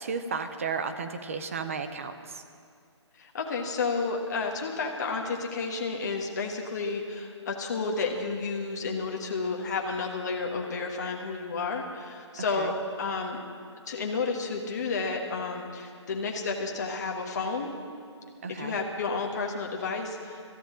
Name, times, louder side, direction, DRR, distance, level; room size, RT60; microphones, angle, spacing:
voice 1, 0.0-2.4 12.4-12.7 18.4-18.8, right 5 dB, 30° right, 9 dB, 0.6 m, -34 dB
voice 2, 3.2-13.4 13.9-17.7 18.5-20.4, left 4 dB, 35° left, 0 dB, 1.3 m, -31 dB
18.5 x 14.0 x 3.8 m, 2.3 s
hypercardioid pair, 175°, 15 cm